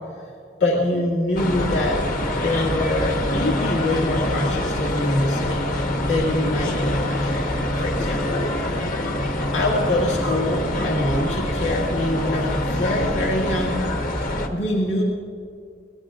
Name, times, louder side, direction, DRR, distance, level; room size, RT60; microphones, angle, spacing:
voice 1, 0.6-2.0 2.4-5.7 6.1-7.5 7.8-8.9 9.5-13.8 14.5-15.0, left 1 dB, 75° left, -4 dB, 2.1 m, -24 dB
sound 1, 1.4-14.5, left 1 dB, 50° left, 1.3 m, -25 dB
22.5 x 19.0 x 2.5 m, 2.3 s
head